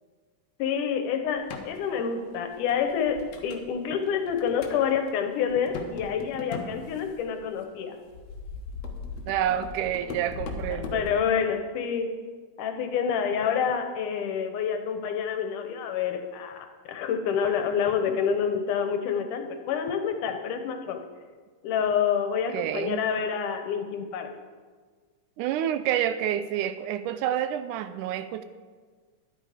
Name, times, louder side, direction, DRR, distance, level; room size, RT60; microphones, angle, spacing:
voice 1, 0.6-8.0 10.7-12.2 12.6-21.0 21.6-24.3, left 7 dB, 85° left, 6 dB, 2.6 m, -28 dB
sound 1, 1.4-1.7 2.3-3.7 4.1-4.8 5.1-5.2 5.5-7.5 8.1-11.1, left 4 dB, 65° left, 2.2 m, -39 dB
voice 2, 9.3-11.1 22.5-23.1 25.4-28.4, right 10 dB, 85° right, 11 dB, 2.2 m, -28 dB
12.0 x 10.5 x 5.0 m, 1.5 s
omnidirectional pair, 3.6 m